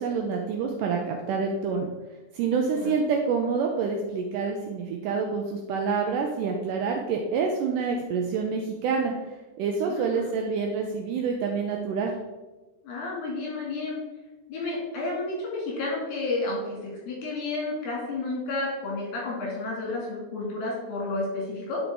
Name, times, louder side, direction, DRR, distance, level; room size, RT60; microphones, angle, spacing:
voice 1, 0.0-1.9 2.3-9.1 9.6-12.1, right 5 dB, 80° right, 2 dB, 1.9 m, -27 dB
voice 2, 9.9-10.3 12.8-14.0 14.5-21.8, left 2 dB, 75° left, -4 dB, 4.3 m, -31 dB
9.8 x 4.6 x 3.7 m, 1.1 s
omnidirectional pair, 4.3 m